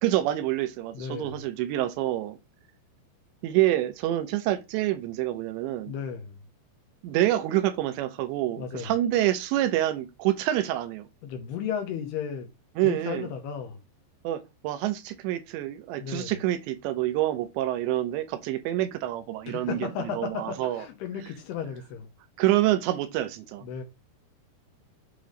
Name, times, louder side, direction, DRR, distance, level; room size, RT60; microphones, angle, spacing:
voice 1, 0.0-2.4 3.4-5.9 7.0-11.1 12.8-13.3 14.2-19.9 20.2-20.9 22.4-23.6, right 14 dB, 80° right, 2.9 m, -27 dB
voice 2, 0.9-1.4 5.9-6.4 8.6-8.9 11.2-12.5 12.8-13.8 16.0-16.4 19.5-22.1 23.6-23.8, left 7 dB, 75° left, 2.9 m, -34 dB
8.3 x 2.9 x 5.1 m
omnidirectional pair, 5.2 m